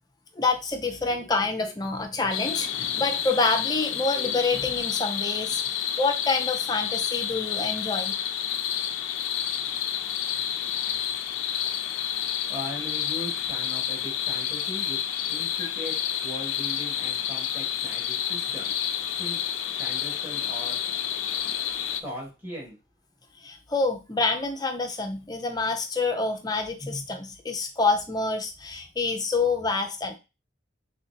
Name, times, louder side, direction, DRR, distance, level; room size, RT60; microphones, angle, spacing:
voice 1, 0.4-8.1 23.4-30.2, left 3 dB, 20° left, 4 dB, 0.5 m, -27 dB
sound 1, 2.3-22.0, left 9 dB, 80° left, 0.4 m, -29 dB
voice 2, 12.5-15.0 15.3-15.9 16.2-20.8 22.0-22.8, equal, 10° right, -4 dB, 1.8 m, -39 dB
4.3 x 3.4 x 2.8 m, 0.28 s
head